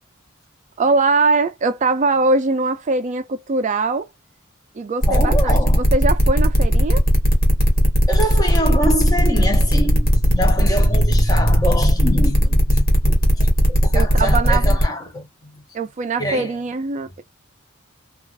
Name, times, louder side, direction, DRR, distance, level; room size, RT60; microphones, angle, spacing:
voice 1, 0.8-4.1 4.7-7.0 13.9-14.8 15.7-17.2, right 3 dB, 35° right, 0.4 m, -21 dB
sound 1, 5.0-14.8, equal, 45° left, 1.5 m, -17 dB
voice 2, 5.1-5.8 8.1-15.2 16.2-16.5, equal, 20° left, 0.9 m, -24 dB
3.3 x 2.4 x 2.4 m
head